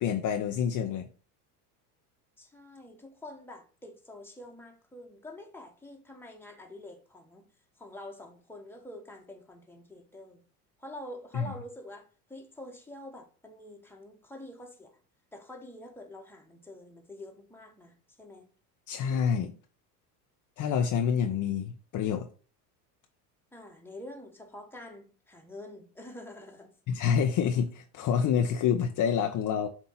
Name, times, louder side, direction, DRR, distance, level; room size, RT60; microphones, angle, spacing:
voice 1, 0.0-1.1 11.3-11.5 18.9-19.5 20.6-22.3 26.9-29.7, left 7 dB, 40° left, 0.8 m, -27 dB
voice 2, 2.4-7.5 7.8-10.4 10.8-15.0 15.3-18.5 23.5-26.7, left 1 dB, 5° left, 1.4 m, -46 dB
7.1 x 2.8 x 5.6 m
hypercardioid pair, 85°, 47 cm